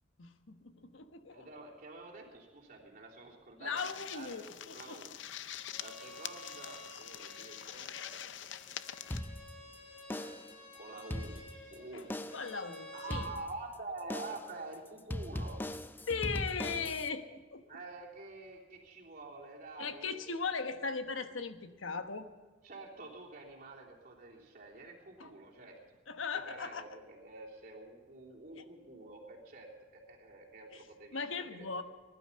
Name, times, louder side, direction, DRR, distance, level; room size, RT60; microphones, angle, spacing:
voice 1, 0.2-1.6 3.6-5.0 11.9-12.1 12.3-13.3 16.1-17.6 19.8-22.3 25.2-25.3 26.1-26.8 30.7-30.8 31.1-31.8, left 5 dB, 85° left, 8 dB, 1.1 m, -38 dB
voice 2, 1.3-5.1 5.8-8.2 10.7-11.4 11.7-12.1 12.9-15.7 17.7-20.3 22.6-25.8 26.5-31.8, right 3 dB, 45° right, -2 dB, 3.4 m, -48 dB
sound 1, 3.8-9.2, left 11 dB, 65° left, 0.5 m, -45 dB
Bowed string instrument, 5.7-13.3, left 1 dB, 40° left, 5.1 m, -52 dB
sound 2, 9.1-9.7 10.1-10.6 11.0-11.7 12.1-12.6 13.1-13.7 14.1-14.6 15.1-17.1, left 1 dB, 10° left, 0.5 m, -40 dB
19.5 x 12.0 x 5.7 m, 1.4 s
head